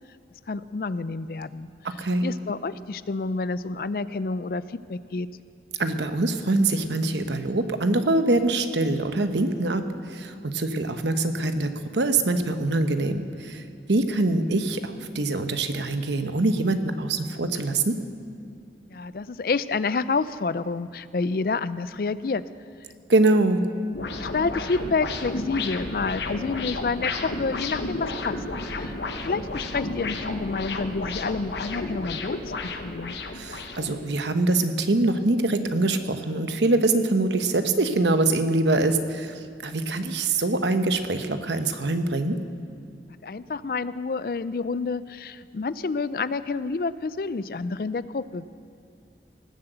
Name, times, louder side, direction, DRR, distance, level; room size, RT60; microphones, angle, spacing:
voice 1, 0.5-1.7 2.2-5.3 18.9-22.4 24.2-28.4 28.7-29.0 29.2-32.4 32.8-33.2 43.2-48.5, left 4 dB, 55° left, 16 dB, 0.4 m, -29 dB
voice 2, 1.8-2.2 5.8-9.8 10.1-13.6 13.9-18.0 23.1-23.6 33.3-39.3 39.6-42.4, right 2 dB, 85° right, 8 dB, 1.0 m, -24 dB
sound 1, 23.9-34.0, left 3 dB, 80° left, 1.0 m, -32 dB
19.0 x 7.8 x 8.0 m, 2.5 s
head